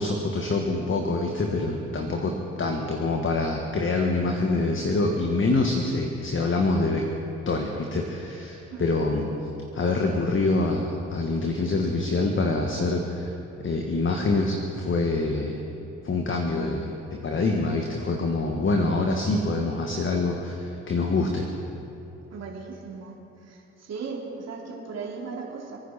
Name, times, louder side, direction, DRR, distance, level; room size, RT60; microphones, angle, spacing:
voice 1, 0.0-7.0 7.4-9.3 9.7-13.3 13.6-15.6 16.0-21.5, left 3 dB, 40° left, 2 dB, 1.8 m, -25 dB
voice 2, 8.7-9.0 22.3-23.1 23.4-25.8, right 5 dB, 55° right, -2 dB, 3.4 m, -37 dB
29.5 x 9.8 x 4.3 m, 2.9 s
hypercardioid pair, 55°, 32 cm